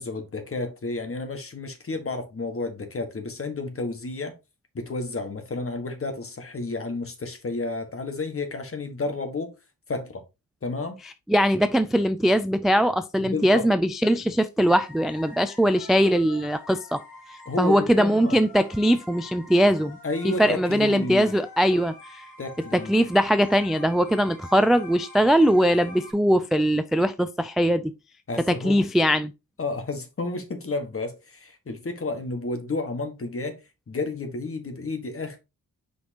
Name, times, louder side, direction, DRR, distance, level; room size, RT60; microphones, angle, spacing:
voice 1, 0.0-4.3 4.7-9.5 9.9-10.2 10.6-11.0 13.2-13.7 17.5-18.4 20.0-21.3 22.4-22.9 28.3-28.8 29.6-33.6 33.9-35.4, left 3 dB, 40° left, 1.5 m, -31 dB
voice 2, 11.3-17.0 17.6-20.0 20.2-22.2 22.7-27.9 28.6-29.3, equal, ahead, 0.3 m, -21 dB
sound 1, 14.6-26.1, left 3 dB, 80° left, 2.3 m, -45 dB
6.1 x 5.4 x 2.8 m
wide cardioid pair, 125°, 35 cm